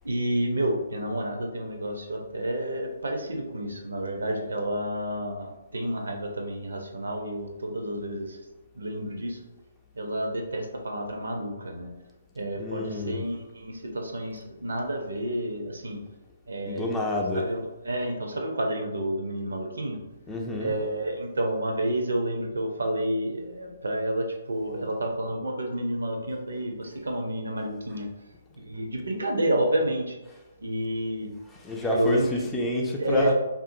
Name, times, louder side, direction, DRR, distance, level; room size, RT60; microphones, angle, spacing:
voice 1, 0.0-8.4 8.7-9.4 10.0-11.9 12.4-16.0 16.5-16.9 17.3-17.6 17.8-20.0 20.6-28.0 28.6-30.1 30.6-31.3 31.9-32.3 33.0-33.3, right 1 dB, 70° right, 2 dB, 0.5 m, -30 dB
voice 2, 12.6-13.2 16.6-17.5 20.3-20.7 31.6-33.3, left 1 dB, 10° left, 0 dB, 0.3 m, -28 dB
2.5 x 2.4 x 2.5 m, 1.0 s
figure-of-eight pair, 130°, 0 cm